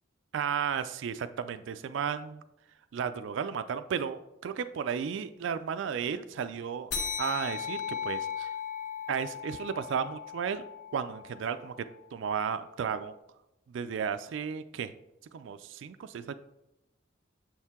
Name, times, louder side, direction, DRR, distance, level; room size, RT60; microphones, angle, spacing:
voice 1, 0.3-2.4 2.9-6.9 7.2-8.5 9.1-10.6 10.9-11.7 12.1-13.1 13.7-14.9 15.3-16.4, right 7 dB, 65° right, 11 dB, 0.3 m, -33 dB
sound 1, 6.9-11.8, left 7 dB, 60° left, 1.0 m, -37 dB
7.2 x 4.5 x 3.6 m, 0.90 s
head